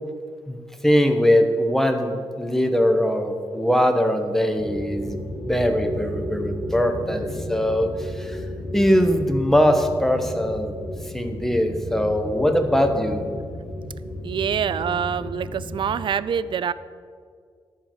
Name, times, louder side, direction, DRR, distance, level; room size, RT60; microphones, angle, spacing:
voice 1, 0.5-8.4 8.7-10.7 11.1-13.2, equal, 5° left, 6 dB, 1.0 m, -21 dB
sound 1, 4.6-16.0, left 1 dB, 70° left, 2.2 m, -33 dB
voice 2, 14.2-16.7, right 8 dB, 60° right, 16 dB, 0.4 m, -25 dB
11.0 x 4.6 x 7.2 m, 2.1 s
cardioid pair, 80°, 9 cm